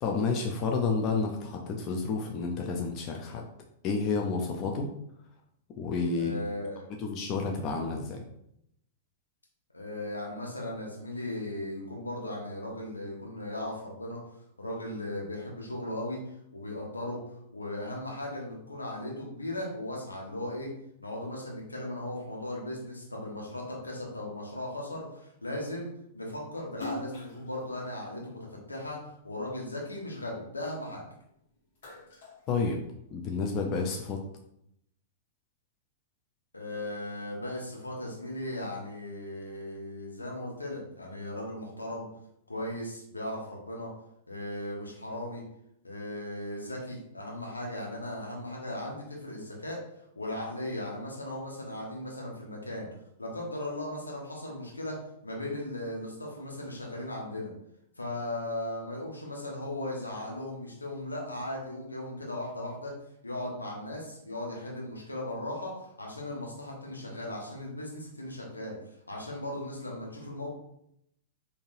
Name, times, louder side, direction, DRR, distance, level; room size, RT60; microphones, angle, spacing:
voice 1, 0.0-3.4 3.8-4.9 5.8-6.3 7.0-8.2 32.5-32.8 33.1-34.2, left 4 dB, 35° left, 1 dB, 0.5 m, -30 dB
voice 2, 6.1-6.9 9.7-14.2 14.6-16.2 16.5-17.2 17.5-20.7 21.0-29.0 29.2-31.0 36.5-42.1 42.5-43.9 44.3-45.4 45.8-49.8 50.2-52.9 53.2-55.0 55.2-57.5 58.0-62.9 63.2-68.7 69.1-70.5, left 1 dB, 85° left, -2 dB, 1.0 m, -37 dB
Splash splatter, 26.7-29.3 29.7-31.2 31.5-33.3, left 2 dB, 65° left, 1.4 m, -44 dB
3.8 x 2.7 x 2.6 m, 0.76 s
figure-of-eight pair, 100°, 0 cm